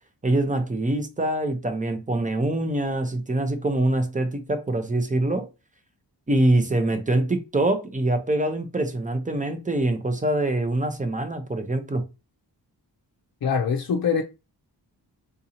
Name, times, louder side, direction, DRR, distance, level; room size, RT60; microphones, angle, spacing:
voice 1, 0.2-5.5 6.3-12.1, right 1 dB, 20° right, 0.6 m, -24 dB
voice 2, 13.4-14.2, left 6 dB, 60° left, 0.5 m, -23 dB
3.8 x 2.7 x 2.8 m
wide cardioid pair, 90°, 42 cm